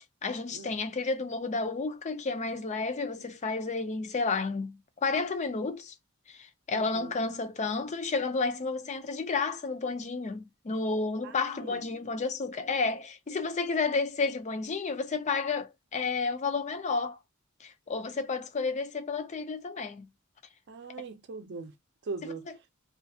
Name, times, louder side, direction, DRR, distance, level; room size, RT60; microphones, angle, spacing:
voice 1, 0.2-5.9 6.3-17.2 17.6-20.1, left 4 dB, 35° left, 0.5 m, -31 dB
voice 2, 6.7-7.2 11.2-11.8 20.7-21.7 22.0-22.5, right 4 dB, 55° right, 0.5 m, -41 dB
2.7 x 2.5 x 2.4 m
head